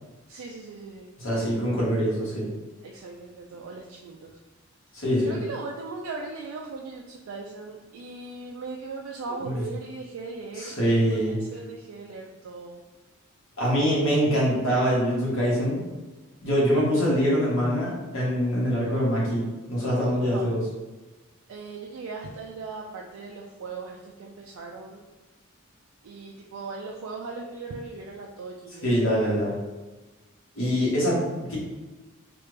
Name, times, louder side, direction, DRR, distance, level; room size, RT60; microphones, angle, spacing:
voice 1, 0.3-1.1 2.8-4.3 5.2-12.8 20.2-20.5 21.5-25.0 26.0-28.9 30.6-30.7, right 3 dB, 75° right, -1 dB, 0.4 m, -38 dB
voice 2, 1.2-2.5 4.9-5.4 9.4-9.6 10.6-11.4 13.6-15.8 16.4-19.4 19.7-20.7 28.8-29.5 30.6-31.6, equal, 60° left, -6 dB, 1.4 m, -24 dB
3.2 x 2.5 x 3.2 m, 1.2 s
head